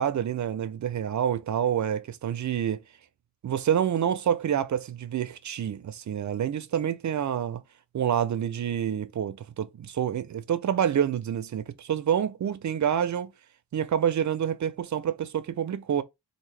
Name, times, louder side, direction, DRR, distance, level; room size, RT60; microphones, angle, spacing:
voice 1, 0.0-2.8 3.4-7.6 7.9-13.3 13.7-16.0, right 9 dB, 45° right, 0.4 m, -27 dB
3.6 x 2.6 x 3.2 m
wide cardioid pair, 160°, 45 cm